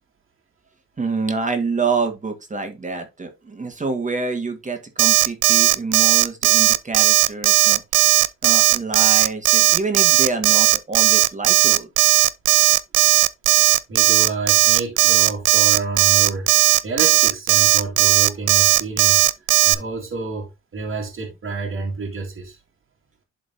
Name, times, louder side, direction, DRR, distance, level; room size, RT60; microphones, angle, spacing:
voice 1, 1.0-7.8 8.4-11.9, right 4 dB, 25° right, 1.6 m, -27 dB
Alarm, 5.0-19.7, right 18 dB, 80° right, 0.5 m, -15 dB
voice 2, 13.9-19.3 19.6-22.6, right 3 dB, 45° right, 1.9 m, -29 dB
11.5 x 3.9 x 2.6 m
cardioid pair, 90°, 30 cm